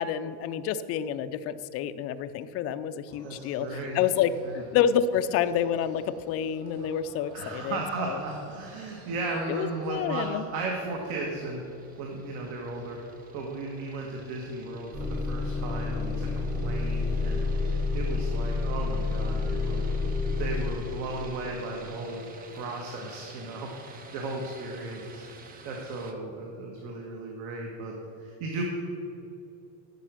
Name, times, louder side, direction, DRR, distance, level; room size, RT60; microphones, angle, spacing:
voice 1, 0.0-8.2 9.5-10.4, left 8 dB, 40° left, 11 dB, 0.4 m, -28 dB
sound 1, 3.1-9.9, right 1 dB, 55° right, 2.8 m, -53 dB
voice 2, 3.2-4.0 4.4-4.6 7.3-11.6 12.0-13.0 13.3-19.9 20.4-22.2 22.5-25.2 25.6-28.6, right 2 dB, 75° right, 0 dB, 1.6 m, -35 dB
sound 2, 9.3-26.1, right 4 dB, 25° right, 0.7 m, -51 dB
Motor vehicle (road) / Engine starting / Idling, 14.9-20.7, left 3 dB, ahead, 1.1 m, -29 dB
13.0 x 5.7 x 6.1 m, 2.9 s
cardioid pair, 165°, 37 cm